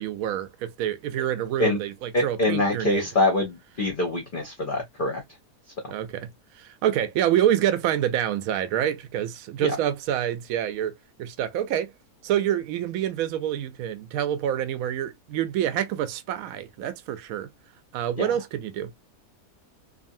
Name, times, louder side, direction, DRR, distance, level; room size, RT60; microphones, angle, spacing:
voice 1, 0.0-1.9 2.2-3.1 5.9-6.3 6.6-10.9 11.2-11.9 12.2-17.5 17.9-18.9, right 11 dB, 70° right, 1.0 m, -27 dB
voice 2, 2.1-5.2 9.6-9.8 18.2-18.3, left 2 dB, 50° left, 0.7 m, -25 dB
2.7 x 2.5 x 2.5 m
omnidirectional pair, 1.6 m